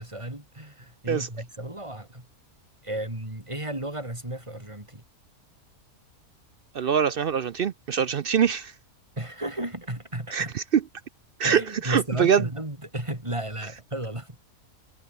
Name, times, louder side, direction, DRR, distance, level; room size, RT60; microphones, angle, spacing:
voice 1, 0.0-2.3 2.8-5.0 9.2-10.5 11.4-14.4, right 1 dB, 20° right, 4.5 m, -34 dB
voice 2, 6.7-8.7 10.3-10.8 11.4-12.5, right 7 dB, 60° right, 0.6 m, -24 dB
omnidirectional pair, 1.5 m